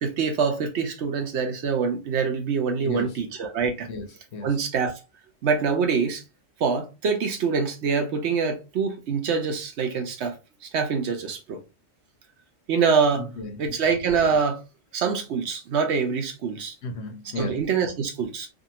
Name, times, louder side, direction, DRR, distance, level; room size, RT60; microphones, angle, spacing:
voice 1, 0.0-3.9 4.4-4.9 5.4-6.2 6.6-10.3 10.7-11.6 12.7-13.2 13.6-14.6 14.9-16.7 17.4-18.5, right 5 dB, 65° right, 0.9 m, -25 dB
voice 2, 2.8-3.2 3.9-4.6 13.2-13.6 16.8-17.6, left 2 dB, 65° left, 0.8 m, -34 dB
2.6 x 2.5 x 2.8 m
omnidirectional pair, 1.3 m